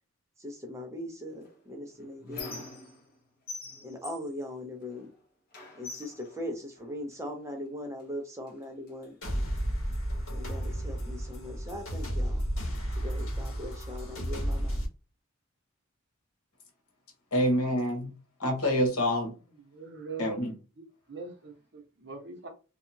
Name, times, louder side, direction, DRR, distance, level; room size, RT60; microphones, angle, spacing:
voice 1, 0.4-2.6 3.8-5.1 5.7-9.2 10.3-12.4 13.0-14.8, left 1 dB, 15° right, 0.5 m, -40 dB
Squeak, 1.4-3.2 3.5-5.1 5.5-7.2 8.0-8.1 8.5-9.5, left 3 dB, 40° left, 1.0 m, -45 dB
sound 1, 9.2-14.9, equal, 70° left, 1.6 m, -32 dB
voice 2, 17.3-18.1 18.4-19.3 20.2-20.5, equal, 90° left, 1.2 m, -26 dB
voice 3, 19.7-20.3 21.1-22.5, right 5 dB, 50° right, 0.8 m, -42 dB
2.8 x 2.4 x 2.6 m
head